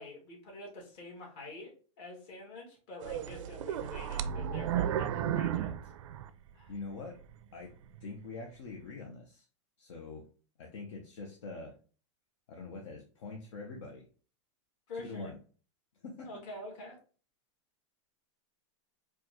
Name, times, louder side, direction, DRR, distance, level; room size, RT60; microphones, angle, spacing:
voice 1, 0.0-5.8 6.5-6.7 14.9-15.3 16.2-17.0, left 2 dB, 50° left, -1 dB, 2.0 m, -46 dB
sound 1, 3.0-6.8 7.2-7.3 7.9-8.1, right 10 dB, 80° right, 0.4 m, -33 dB
voice 2, 6.7-7.2 7.5-7.7 8.0-9.5 9.8-10.3 10.6-11.7 12.5-14.0 14.9-15.4 16.0-16.3, left 3 dB, 70° left, 1 dB, 0.9 m, -44 dB
4.4 x 2.5 x 2.9 m, 0.38 s
supercardioid pair, 150°, 16 cm